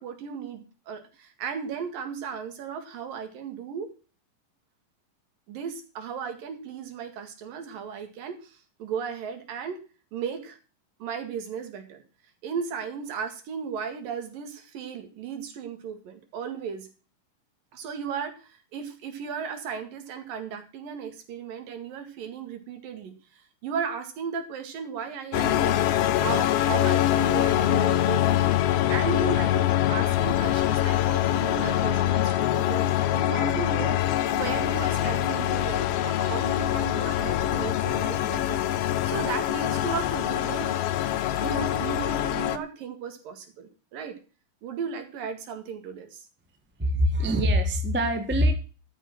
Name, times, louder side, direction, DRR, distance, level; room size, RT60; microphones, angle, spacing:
voice 1, 0.0-3.9 5.5-9.8 10.1-10.6 11.0-12.0 12.4-16.9 17.7-28.4 28.9-38.6 39.1-40.7 41.4-44.2 44.6-46.3, right 6 dB, 80° right, 7 dB, 3.8 m, -35 dB
sound 1, 25.3-42.6, left 12 dB, 90° left, 1.3 m, -24 dB
voice 2, 46.8-48.5, equal, 15° right, 6 dB, 0.3 m, -23 dB
14.0 x 7.4 x 6.1 m, 0.35 s
omnidirectional pair, 4.0 m